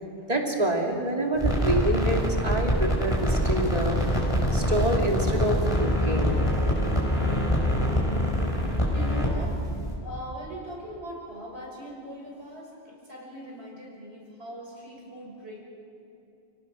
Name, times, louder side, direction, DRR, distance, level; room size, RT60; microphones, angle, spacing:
voice 1, 0.3-4.0 4.5-6.4, right 1 dB, 35° right, 1 dB, 2.6 m, -27 dB
sound 1, 1.3-9.9, equal, 25° left, 4.8 m, -25 dB
voice 2, 8.9-9.6 10.0-15.6, equal, 75° right, -2 dB, 6.3 m, -40 dB
29.0 x 18.0 x 6.2 m, 2.8 s
omnidirectional pair, 1.1 m